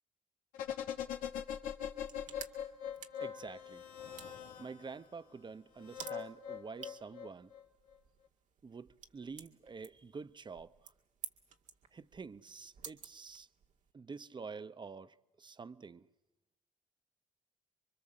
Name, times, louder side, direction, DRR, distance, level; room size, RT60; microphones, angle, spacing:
sound 1, 0.5-5.0 5.8-7.6 7.9-8.0, left 9 dB, 85° left, 1.9 m, -42 dB
sound 2, 1.8-13.9, right 7 dB, 65° right, 2.1 m, -54 dB
voice 1, 3.2-3.8 4.6-7.5 8.6-10.7 11.9-13.5 13.9-16.1, right 5 dB, 35° right, 1.0 m, -48 dB
27.0 x 23.5 x 7.7 m
supercardioid pair, 65°, 14 cm